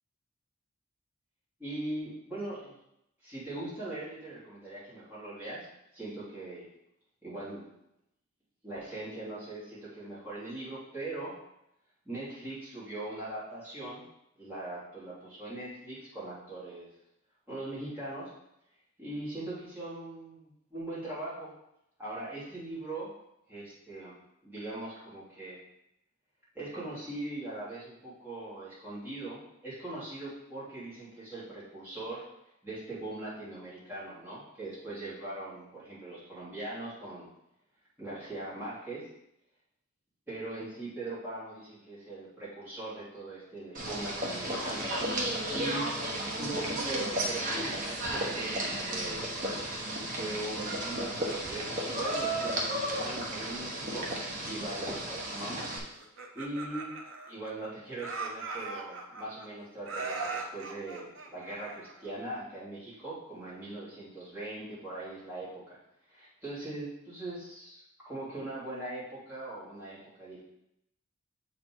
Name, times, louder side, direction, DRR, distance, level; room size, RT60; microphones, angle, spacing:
voice 1, 1.6-2.8 3.2-5.7 5.9-6.7 7.2-7.7 8.6-11.3 12.0-14.0 14.4-16.9 17.5-18.3 19.0-21.5 22.0-23.1 23.5-24.1 24.4-25.6 26.5-32.2 32.6-37.3 38.0-39.0 40.3-44.9 45.5-45.8 46.4-49.2 50.1-54.1 54.4-55.7 56.3-56.9 57.3-65.8 66.1-70.4, right 2 dB, 10° right, -10 dB, 2.9 m, -40 dB
sound 1, 43.7-55.8, right 1 dB, 40° right, 1.3 m, -33 dB
Laughter, 56.0-57.7 58.0-59.5 59.8-62.1, right 3 dB, 65° right, 0.8 m, -39 dB
7.5 x 4.1 x 4.6 m, 0.82 s
head